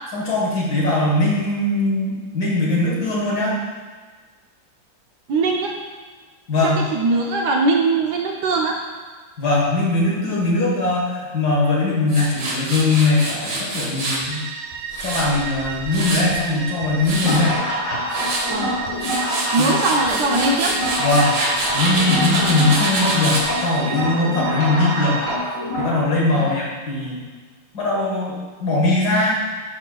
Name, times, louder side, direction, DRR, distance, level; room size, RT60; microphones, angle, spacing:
voice 1, 0.1-3.6 6.5-6.8 9.4-14.4 15.0-17.6 19.6-19.7 21.0-21.4 21.7-25.2 25.8-27.2 27.7-29.3, left 2 dB, 55° left, -4 dB, 2.0 m, -20 dB
voice 2, 5.3-5.8 6.6-8.8 18.5-18.8 19.5-20.8 22.3-22.6 26.3-26.6, right 3 dB, 70° right, 0 dB, 1.1 m, -21 dB
Tools, 12.1-14.2 14.7-16.4 16.8-17.4 17.9-18.5 18.9-23.5, right 2 dB, 45° right, 0.8 m, -26 dB
sound 1, 14.3-25.4, right 6 dB, 85° right, 1.4 m, -33 dB
sound 2, 17.1-26.0, equal, 85° left, 2.9 m, -26 dB
11.0 x 4.3 x 2.3 m, 1.4 s
omnidirectional pair, 2.2 m